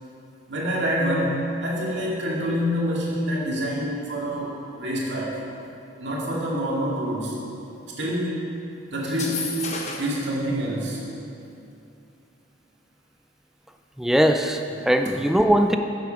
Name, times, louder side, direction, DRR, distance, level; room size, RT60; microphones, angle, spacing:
voice 1, 0.5-5.4 6.0-7.4 8.0-8.4 8.9-9.5 10.0-11.0, equal, 65° right, -5 dB, 2.2 m, -26 dB
sound 1, 9.1-10.2, left 3 dB, 35° left, 1.0 m, -32 dB
voice 2, 14.0-15.8, equal, ahead, 6 dB, 0.3 m, -20 dB
9.5 x 7.9 x 5.1 m, 2.7 s
head